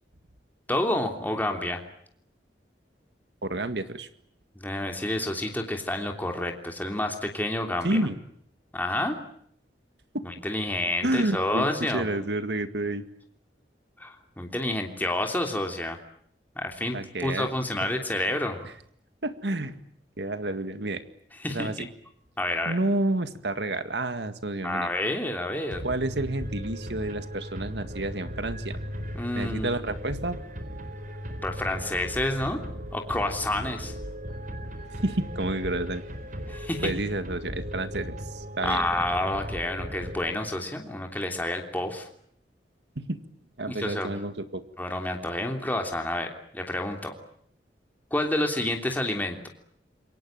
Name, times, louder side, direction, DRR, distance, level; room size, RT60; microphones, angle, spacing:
voice 1, 0.7-1.8 4.5-8.0 8.7-9.2 10.2-12.0 14.0-16.0 16.5-18.7 21.4-21.9 22.4-22.7 24.6-25.8 29.1-29.7 31.4-32.6 32.9-33.9 36.5-36.9 38.6-42.1 43.7-44.1 44.8-47.1 48.1-49.5, left 1 dB, 10° left, 3 dB, 3.1 m, -29 dB
voice 2, 3.4-4.1 7.8-8.2 10.1-10.3 11.0-11.6 11.9-13.0 16.9-17.5 19.2-19.8 20.2-21.0 21.5-21.9 22.7-24.9 25.8-28.8 29.4-30.4 35.0-36.0 36.8-38.9 43.0-43.2 43.6-44.6, right 2 dB, 75° right, 10 dB, 2.0 m, -29 dB
sound 1, 25.7-40.8, equal, 50° right, 4.1 m, -37 dB
28.0 x 24.0 x 8.9 m, 0.67 s
head